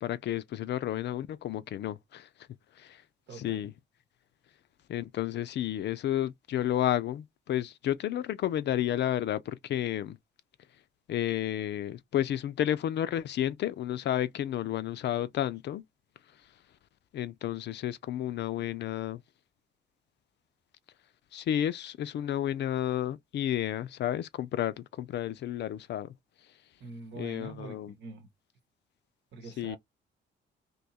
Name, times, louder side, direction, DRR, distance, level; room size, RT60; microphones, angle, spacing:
voice 1, 0.0-2.3 2.8-3.0 3.4-3.7 4.9-10.2 11.1-15.8 17.1-19.2 21.3-26.1 27.2-27.9 29.6-29.8, left 11 dB, 60° left, 0.4 m, -31 dB
voice 2, 3.3-3.7 26.8-28.3 29.3-29.8, right 3 dB, 65° right, 1.1 m, -44 dB
2.9 x 2.3 x 4.1 m
cardioid pair, 90°, 20 cm